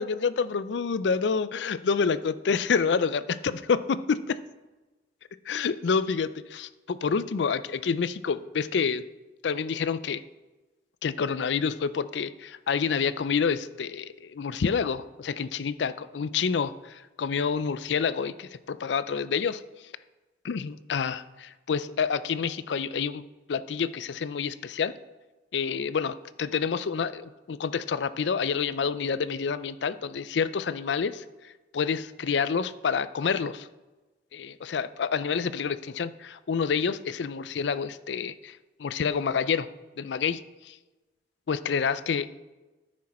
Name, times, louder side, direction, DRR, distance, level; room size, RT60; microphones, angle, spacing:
voice 1, 0.0-4.0 5.5-9.0 9.4-10.2 11.0-19.6 20.4-23.2 23.5-24.9 25.5-31.2 31.7-33.7 34.3-39.7 40.0-40.4 40.7-40.8 41.5-42.3, left 6 dB, 80° left, 15 dB, 0.4 m, -28 dB
13.5 x 6.3 x 4.3 m, 1.2 s
head